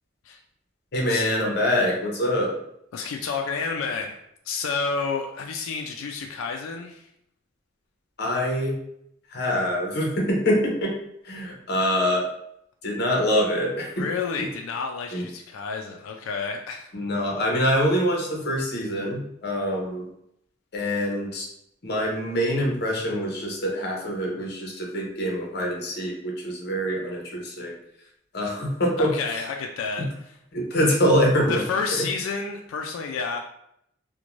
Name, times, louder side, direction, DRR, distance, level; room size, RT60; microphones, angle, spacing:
voice 1, 0.9-2.5 8.2-8.8 9.3-10.9 11.2-12.3 12.8-14.0 14.4-14.5 15.1-15.2 16.9-20.1 20.7-21.5 21.8-27.8 28.3-29.1 30.5-31.6 31.9-32.1, equal, 55° left, -1 dB, 0.7 m, -25 dB
voice 2, 2.9-4.2 4.4-7.1 14.0-16.9 29.0-30.1 31.5-33.4, left 5 dB, 90° left, 3 dB, 0.3 m, -30 dB
2.5 x 2.2 x 3.0 m, 0.75 s
head